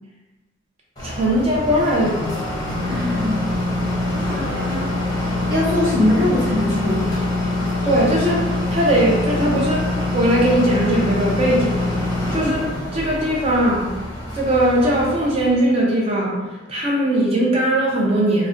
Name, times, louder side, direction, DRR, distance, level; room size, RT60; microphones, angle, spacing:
sound 1, 1.0-15.6, left 2 dB, 20° left, 0.7 m, -24 dB
voice 1, 1.0-2.4 7.8-9.9 10.1-11.9 12.3-12.6 12.9-13.9 14.3-16.4 16.7-18.5, right 1 dB, 30° right, -3 dB, 0.4 m, -19 dB
voice 2, 2.8-3.4 4.2-5.0 5.5-7.2 12.4-12.6, left 1 dB, 55° right, -7 dB, 1.0 m, -22 dB
2.4 x 2.1 x 3.6 m, 1.1 s
head